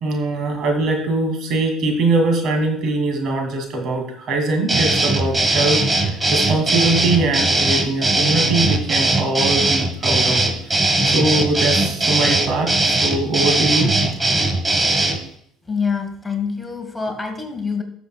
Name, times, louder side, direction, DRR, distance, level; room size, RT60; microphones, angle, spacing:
voice 1, 0.0-14.0, right 2 dB, 60° right, 3 dB, 2.5 m, -22 dB
sound 1, 4.7-15.2, right 2 dB, 20° right, 1.4 m, -19 dB
voice 2, 15.6-17.8, left 5 dB, 15° left, 5 dB, 1.5 m, -25 dB
13.5 x 7.0 x 2.3 m, 0.67 s
supercardioid pair, 80°, 0 cm